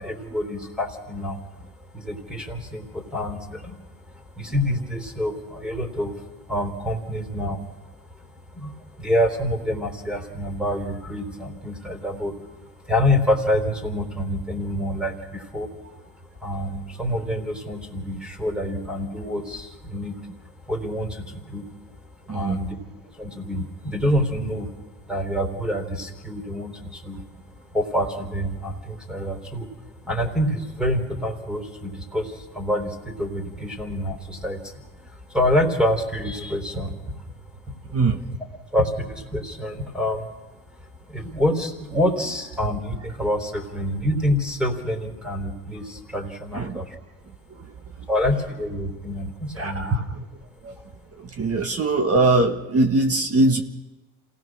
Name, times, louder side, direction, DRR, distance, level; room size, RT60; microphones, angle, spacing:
voice 1, 0.0-1.4 1.9-8.2 8.5-15.7 16.4-20.1 20.4-21.7 22.2-22.8 23.1-24.8 25.1-27.2 27.7-29.7 30.1-38.1 38.7-40.3 40.8-47.0 48.1-50.0, left 1 dB, ahead, 5 dB, 4.0 m, -27 dB
voice 2, 49.6-50.0 51.4-53.6, right 2 dB, 30° right, 5 dB, 1.9 m, -21 dB
27.0 x 18.0 x 6.3 m, 1.2 s
supercardioid pair, 105°, 46 cm